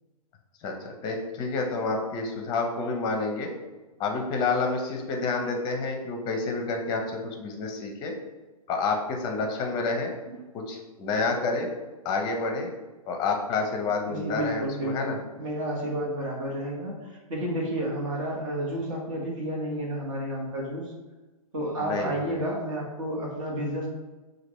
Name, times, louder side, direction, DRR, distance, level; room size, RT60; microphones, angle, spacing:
voice 1, 0.6-3.5 4.0-8.1 8.7-10.1 10.5-11.7 12.0-12.7 13.1-15.2 21.8-22.4, left 3 dB, 25° left, 2 dB, 0.6 m, -29 dB
voice 2, 14.1-20.9 21.5-23.9, right 1 dB, 55° right, -2 dB, 1.5 m, -31 dB
5.8 x 2.6 x 3.0 m, 1.2 s
figure-of-eight pair, 120°, 20 cm